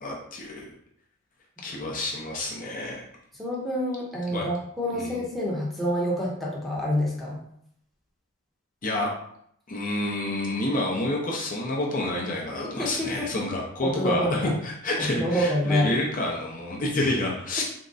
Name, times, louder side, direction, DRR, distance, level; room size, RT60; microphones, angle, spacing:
voice 1, 0.0-0.7 1.6-3.0 4.3-4.5 4.9-5.2 8.8-9.1 9.7-17.6, left 1 dB, 40° left, -2 dB, 0.6 m, -28 dB
voice 2, 3.4-7.4 12.6-13.4 13.8-14.5 15.0-16.0, equal, ahead, -6 dB, 0.8 m, -27 dB
3.6 x 2.2 x 3.9 m, 0.69 s
head